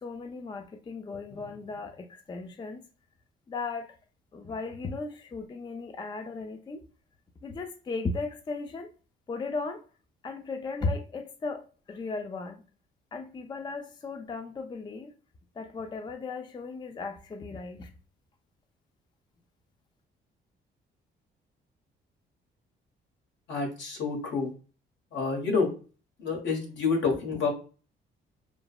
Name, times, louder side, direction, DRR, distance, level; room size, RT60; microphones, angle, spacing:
voice 1, 0.0-2.8 3.5-3.9 4.3-6.8 7.4-8.9 9.3-9.8 10.2-11.6 11.9-12.6 13.1-15.1 15.6-17.9, left 3 dB, 25° left, 0.3 m, -36 dB
voice 2, 23.5-24.5 25.1-25.7 26.2-27.5, left 4 dB, 70° left, 1.2 m, -28 dB
3.2 x 2.0 x 2.3 m
cardioid pair, 90°, 20 cm